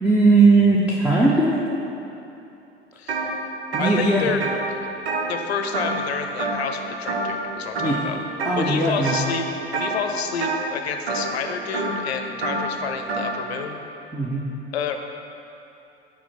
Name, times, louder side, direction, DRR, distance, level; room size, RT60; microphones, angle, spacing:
voice 1, 0.0-1.6 3.7-4.3 7.8-7.9 8.4-9.2 14.1-14.4, right 3 dB, 5° right, -5 dB, 0.7 m, -18 dB
voice 2, 3.0-3.3 3.8-4.4 4.8-4.9 5.3-8.2 8.5-9.5 9.7-13.9 14.7-15.0, left 6 dB, 70° left, 6 dB, 0.7 m, -29 dB
sound 1, 3.1-3.3 3.6-6.1 6.4-6.8 7.1-7.4 7.7-8.6 9.0-9.4 9.7-13.3, right 3 dB, 75° right, 1.0 m, -27 dB
8.4 x 4.6 x 4.4 m, 2.8 s
figure-of-eight pair, 75°, 33 cm